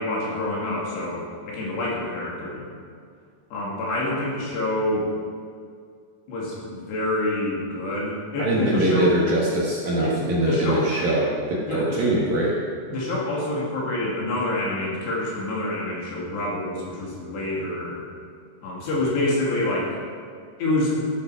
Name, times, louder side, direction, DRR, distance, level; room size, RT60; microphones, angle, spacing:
voice 1, 0.0-2.7 3.5-5.1 6.3-9.2 10.0-10.9 11.7-12.0 12.9-18.0 18.6-20.0 20.6-21.0, left 1 dB, 60° left, -4 dB, 4.4 m, -27 dB
voice 2, 8.4-12.6, right 1 dB, 60° right, -4 dB, 2.7 m, -22 dB
14.5 x 12.5 x 4.9 m, 2.2 s
omnidirectional pair, 5.9 m